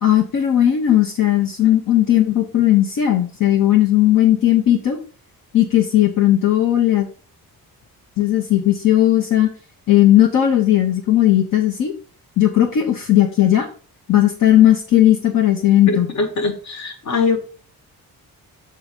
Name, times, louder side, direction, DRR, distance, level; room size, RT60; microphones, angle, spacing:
voice 1, 0.0-5.0 5.5-7.1 8.2-9.5 9.9-11.9 12.4-13.7 14.1-16.1, left 12 dB, 65° left, 0 dB, 1.1 m, -16 dB
voice 2, 15.9-17.4, left 4 dB, 50° left, 6 dB, 1.4 m, -22 dB
7.1 x 3.8 x 5.3 m, 0.40 s
wide cardioid pair, 145°, 36 cm